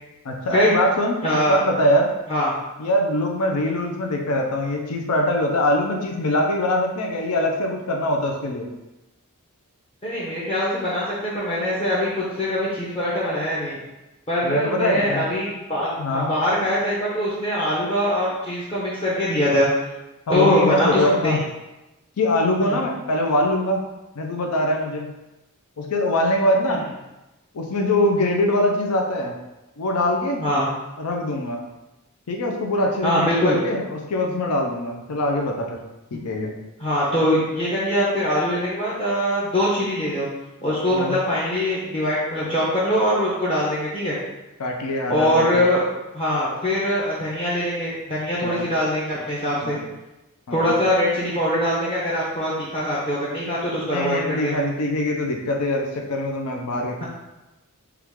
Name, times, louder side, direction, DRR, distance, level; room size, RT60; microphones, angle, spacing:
voice 1, 0.2-2.1 2.8-8.7 14.4-15.3 16.0-16.3 20.3-21.4 22.2-23.8 24.2-25.1 25.8-26.8 27.5-29.3 29.8-30.4 31.0-31.6 32.3-35.8 36.1-36.5 40.9-41.2 44.6-45.6 48.4-48.6 49.6-49.8 50.5-50.7 53.8-57.0, left 1 dB, 85° left, 1 dB, 0.6 m, -23 dB
voice 2, 1.2-1.6 2.3-2.5 10.0-13.8 14.3-19.7 20.3-21.4 22.6-22.8 26.7-26.8 30.4-30.7 33.0-33.6 36.8-40.3 40.6-44.2 45.1-45.8 46.1-49.8 50.5-54.6, equal, 25° left, -8 dB, 0.7 m, -22 dB
4.5 x 2.4 x 3.6 m, 1.0 s
head